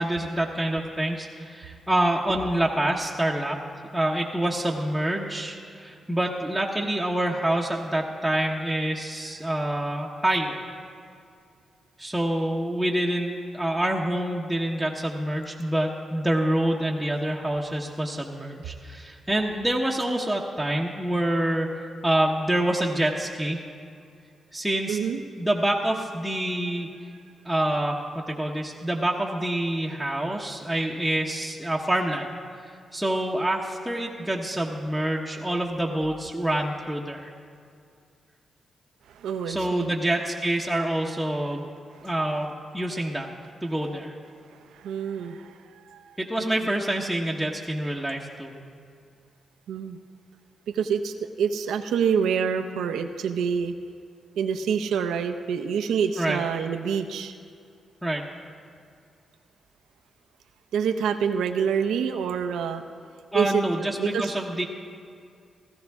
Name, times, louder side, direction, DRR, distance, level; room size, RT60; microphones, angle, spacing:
voice 1, 0.0-3.6 3.9-10.6 12.0-23.6 24.5-25.0 25.4-26.9 27.4-32.3 32.9-37.3 39.5-41.7 42.0-43.3 43.6-44.1 46.2-48.6 56.2-56.4 58.0-58.3 63.3-64.6, right 1 dB, 5° right, -3 dB, 1.0 m, -26 dB
voice 2, 24.9-25.2 39.1-39.9 42.0-42.1 44.7-46.0 46.6-46.7 49.7-50.0 50.7-53.7 54.4-57.3 60.7-62.8 63.3-64.3, right 7 dB, 90° right, 7 dB, 0.6 m, -27 dB
16.5 x 14.0 x 3.6 m, 2.3 s
cardioid pair, 80°, 0 cm